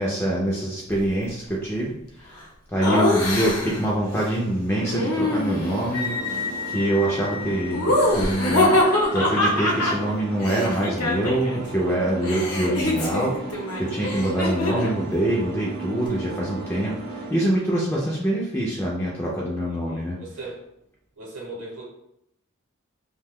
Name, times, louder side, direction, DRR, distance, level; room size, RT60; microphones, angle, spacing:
voice 1, 0.0-1.9 2.7-20.2, right 1 dB, 10° left, -5 dB, 0.3 m, -25 dB
Laughter, 2.8-3.9 4.9-5.9 7.7-11.6 11.9-15.0, left 1 dB, 85° left, 0.7 m, -24 dB
sound 1, 4.7-17.3, right 4 dB, 45° right, 0.5 m, -36 dB
Wind instrument woodwind instrument, 5.9-9.8, left 6 dB, 60° left, 0.9 m, -34 dB
voice 2, 19.7-20.6 21.2-21.8, right 2 dB, 65° right, -5 dB, 0.8 m, -38 dB
2.6 x 2.2 x 3.4 m, 0.79 s
head